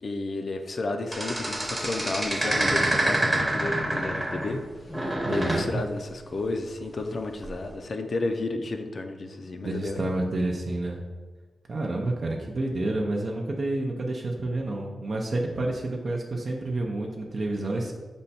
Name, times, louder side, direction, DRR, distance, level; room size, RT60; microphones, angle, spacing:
voice 1, 0.0-4.6 4.9-5.0 5.3-10.1, left 2 dB, 55° left, 6 dB, 0.4 m, -32 dB
sound 1, 1.1-4.6 4.9-5.7 7.4-7.7, right 1 dB, 15° right, 0.9 m, -27 dB
voice 2, 5.3-5.8 9.6-11.0 11.7-17.9, right 2 dB, 50° right, 0 dB, 0.5 m, -29 dB
5.2 x 2.2 x 4.1 m, 1.4 s
cardioid pair, 85°, 0 cm